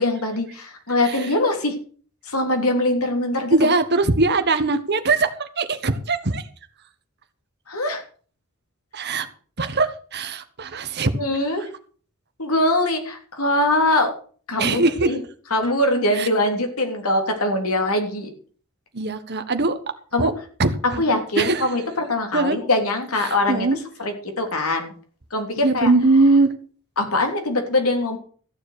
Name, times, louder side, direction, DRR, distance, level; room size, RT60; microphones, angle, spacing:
voice 1, 0.0-1.7 2.3-3.5 7.7-8.0 11.2-11.7 12.4-14.1 14.5-15.2 15.5-18.3 20.1-20.3 21.0-21.8 22.1-24.9 25.3-25.9 27.0-28.2, left 1 dB, 75° left, 4 dB, 3.3 m, -22 dB
voice 2, 3.5-6.4 8.9-9.3 9.6-11.1 14.6-15.1 16.2-16.3 18.9-19.8 20.2-20.3 20.6-21.0 21.4-21.7 22.3-22.6 23.2-23.8 25.6-26.5, right 3 dB, 50° right, 9 dB, 1.3 m, -21 dB
14.5 x 7.2 x 6.7 m, 0.43 s
head